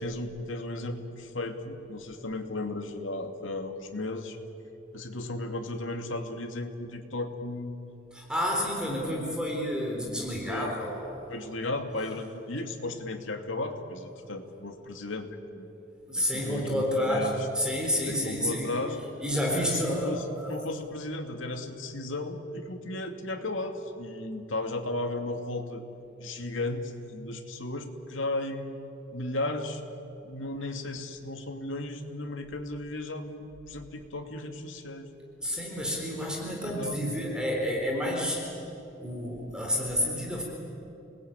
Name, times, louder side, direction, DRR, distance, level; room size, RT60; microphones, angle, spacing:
voice 1, 0.0-4.4 4.9-7.8 10.5-10.7 11.3-15.7 16.2-17.5 18.0-19.0 19.6-25.8 26.2-28.8 29.1-29.8 30.2-35.1 36.5-37.0, left 2 dB, 75° left, 5 dB, 2.4 m, -35 dB
voice 2, 8.1-11.2 16.1-17.3 17.5-18.7 19.2-20.6 35.4-38.4 39.0-40.4, equal, 5° right, -1 dB, 4.0 m, -30 dB
28.5 x 20.0 x 9.0 m, 2.8 s
head